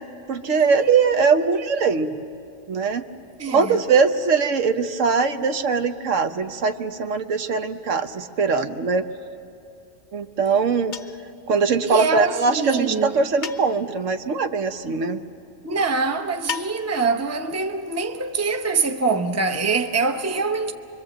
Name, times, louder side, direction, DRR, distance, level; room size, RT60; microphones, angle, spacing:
voice 1, 0.3-2.1 2.7-3.0 3.5-9.1 10.1-10.9 11.5-15.2, right 5 dB, 70° right, 1.2 m, -21 dB
voice 2, 3.4-3.8 11.8-13.3 15.6-20.7, right 4 dB, 15° right, 0.7 m, -24 dB
sound 1, 10.9-11.3 13.4-14.0 16.5-17.1, left 6 dB, 45° left, 0.7 m, -34 dB
24.5 x 24.5 x 7.6 m
omnidirectional pair, 1.3 m